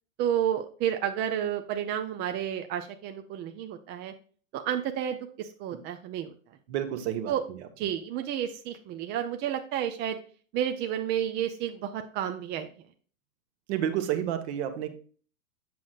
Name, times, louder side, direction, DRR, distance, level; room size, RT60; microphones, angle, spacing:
voice 1, 0.2-4.1 4.5-6.3 7.3-7.4 7.8-10.2 10.5-12.7, right 10 dB, 25° right, 7 dB, 0.5 m, -31 dB
voice 2, 6.7-7.6 13.7-14.9, right 10 dB, 55° right, 8 dB, 1.2 m, -30 dB
8.3 x 6.1 x 2.4 m, 0.43 s
hypercardioid pair, 95°, 40 cm